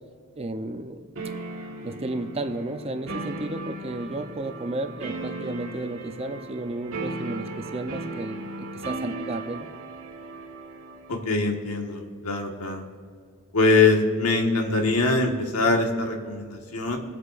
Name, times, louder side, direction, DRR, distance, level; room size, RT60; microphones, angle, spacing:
voice 1, 0.4-1.1 1.8-9.7, right 2 dB, 25° right, 7 dB, 0.6 m, -33 dB
sound 1, 1.2-11.2, right 2 dB, 70° right, 1.5 m, -36 dB
voice 2, 11.1-12.8 13.5-17.0, left 3 dB, 85° left, 2 dB, 1.6 m, -23 dB
23.0 x 8.1 x 2.6 m, 2.1 s
head